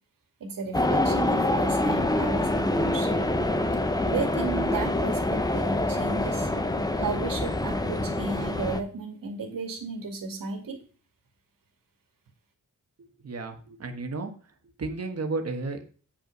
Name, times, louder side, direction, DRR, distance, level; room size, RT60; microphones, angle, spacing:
voice 1, 0.4-3.3 4.1-6.5 7.0-10.8, right 4 dB, 80° right, 4 dB, 2.3 m, -34 dB
sound 1, 0.7-8.8, left 1 dB, 10° left, 0.7 m, -26 dB
voice 2, 13.2-14.3 14.8-15.8, right 3 dB, 50° right, 5 dB, 1.5 m, -32 dB
8.6 x 5.5 x 5.3 m, 0.40 s
wide cardioid pair, 160°, 33 cm